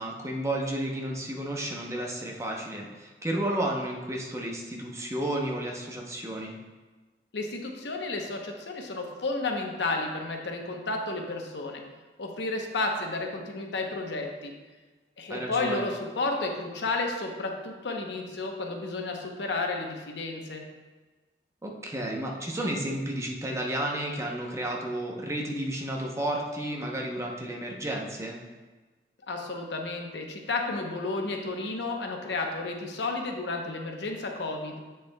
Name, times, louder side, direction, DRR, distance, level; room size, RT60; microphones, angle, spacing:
voice 1, 0.0-6.6 15.3-15.8 21.6-28.4, right 1 dB, 15° right, 0 dB, 0.7 m, -32 dB
voice 2, 7.3-11.8 12.2-14.5 15.2-20.6 29.3-34.8, left 3 dB, 75° left, 3 dB, 0.8 m, -32 dB
7.9 x 6.6 x 2.2 m, 1.3 s
head